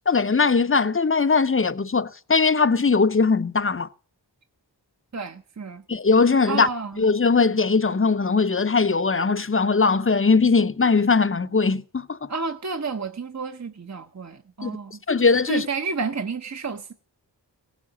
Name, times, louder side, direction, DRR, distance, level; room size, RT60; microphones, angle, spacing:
voice 1, 0.1-3.9 5.9-6.7 7.0-12.3 14.6-14.7 15.1-15.7, left 4 dB, 30° left, 0.6 m, -20 dB
voice 2, 5.1-5.8 6.5-7.0 12.3-14.9 15.5-16.9, right 4 dB, 40° right, 0.7 m, -30 dB
17.0 x 7.4 x 7.2 m
wide cardioid pair, 45°, 43 cm